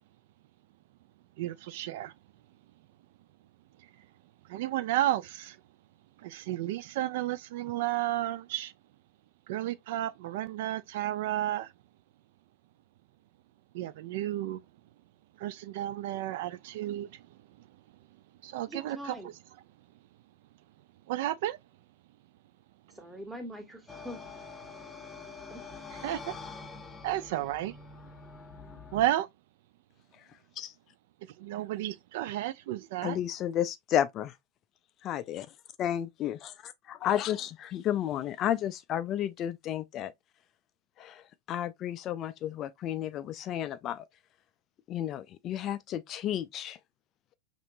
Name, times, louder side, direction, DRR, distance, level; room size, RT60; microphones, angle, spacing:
voice 1, 1.4-2.1 4.5-5.6 6.2-8.7 9.5-11.7 13.7-14.6 15.4-17.1 18.4-19.2 21.1-21.6 26.0-26.4 27.0-27.8 28.9-29.3 31.4-33.2, right 14 dB, 50° right, 0.3 m, -32 dB
voice 2, 18.7-19.3 22.9-24.3 25.5-25.7, equal, 5° right, 1.3 m, -43 dB
sound 1, 23.9-29.1, left 4 dB, 15° left, 0.8 m, -45 dB
voice 3, 33.0-34.4 35.0-35.5 35.8-40.1 41.0-44.0 44.9-46.8, left 11 dB, 35° left, 0.3 m, -32 dB
5.6 x 2.9 x 2.6 m
figure-of-eight pair, 90°, 0 cm